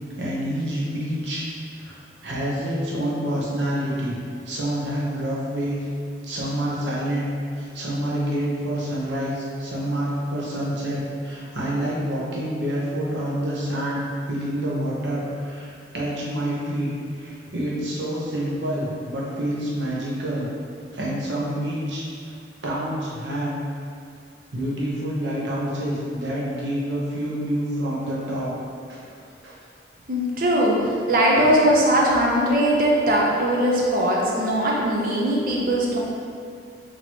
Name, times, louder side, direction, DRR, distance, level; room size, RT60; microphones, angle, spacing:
voice 1, 0.2-1.5 1.8-4.2 4.4-5.9 6.2-20.5 20.9-22.0 22.6-23.6 24.5-28.5 28.9-29.0 29.4-29.5, right 1 dB, 80° right, -6 dB, 0.9 m, -27 dB
voice 2, 30.1-36.0, equal, 50° right, -3 dB, 0.6 m, -20 dB
4.2 x 3.0 x 3.0 m, 2.3 s
head